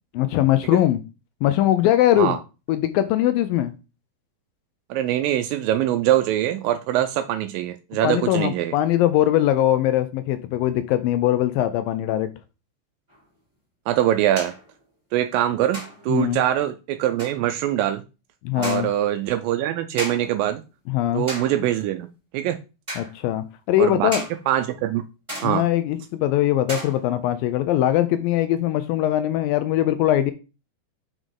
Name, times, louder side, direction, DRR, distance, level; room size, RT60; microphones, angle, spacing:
voice 1, 0.2-1.0 1.4-2.4 2.7-3.7 8.0-12.3 16.1-16.4 18.4-18.9 20.9-21.3 23.0-24.2 25.4-30.3, left 12 dB, 80° left, 11 dB, 2.2 m, -21 dB
voice 2, 4.9-8.7 13.9-14.5 15.1-18.0 18.6-20.6 21.1-22.1 22.3-22.6 23.8-24.1 24.5-25.0 25.4-25.7, right 12 dB, 80° right, 8 dB, 2.1 m, -23 dB
sound 1, 13.1-13.2 14.4-14.7 15.7-16.2 17.2-17.5 18.6-19.1 20.0-20.4 21.3-21.7 22.9-23.2 24.1-24.4 25.3-25.8 26.7-27.3, right 1 dB, 10° right, 1.9 m, -34 dB
6.2 x 5.3 x 3.7 m, 0.31 s
omnidirectional pair, 4.4 m